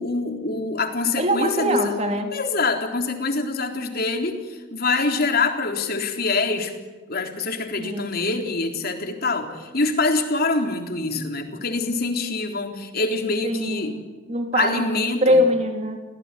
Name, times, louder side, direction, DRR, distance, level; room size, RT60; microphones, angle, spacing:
voice 1, 0.0-1.9 2.3-6.7 7.1-13.9 14.5-15.4, left 3 dB, 50° left, 4 dB, 3.8 m, -25 dB
voice 2, 1.2-2.3 7.8-8.1 13.4-16.0, equal, 35° right, 5 dB, 3.7 m, -23 dB
29.5 x 18.5 x 9.9 m, 1.3 s
head